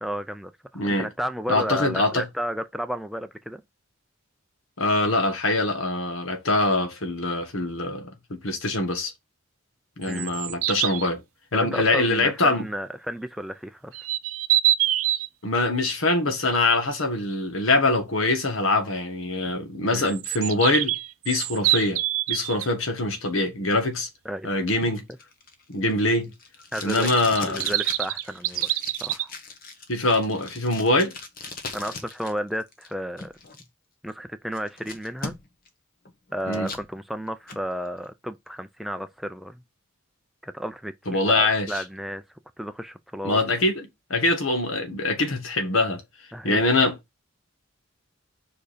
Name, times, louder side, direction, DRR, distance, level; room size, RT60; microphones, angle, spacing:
voice 1, 0.0-3.6 10.1-10.3 11.5-14.0 19.9-20.1 24.3-24.5 26.7-27.1 27.4-28.7 29.0-29.3 31.7-33.3 34.0-35.3 36.3-39.6 40.4-42.2 42.6-43.4 46.3-46.7, equal, ahead, 0.4 m, -32 dB
voice 2, 0.7-1.1 1.5-2.3 4.8-9.1 10.0-11.2 11.5-12.7 15.4-21.0 21.2-22.0 22.3-24.1 24.4-25.0 25.7-26.3 26.8-27.7 29.9-31.1 36.5-36.7 41.1-41.8 43.2-46.0 46.4-46.9, left 2 dB, 75° left, 1.5 m, -23 dB
sound 1, 10.0-11.1 13.9-15.3 20.1-22.7 27.0-29.2, right 14 dB, 80° right, 0.6 m, -25 dB
Packing tape duct tape, 24.8-32.3 32.6-33.6 34.1-34.2 34.5-35.7 36.1-36.9 37.3-37.6, left 3 dB, 40° left, 1.2 m, -39 dB
5.0 x 4.7 x 5.0 m
head